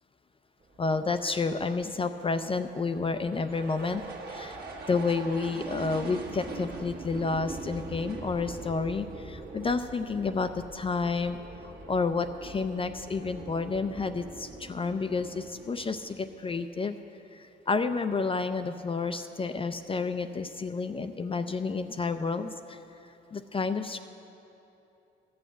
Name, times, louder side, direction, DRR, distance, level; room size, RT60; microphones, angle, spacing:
sound 1, 0.6-16.6, right 3 dB, 55° right, 1.6 m, -43 dB
voice 1, 0.8-4.6 4.9-11.4 11.6-17.0 17.3-22.8 23.3-24.0, left 4 dB, 25° left, 9 dB, 0.4 m, -30 dB
14.0 x 6.4 x 7.9 m, 2.9 s
cardioid pair, 90°, 20 cm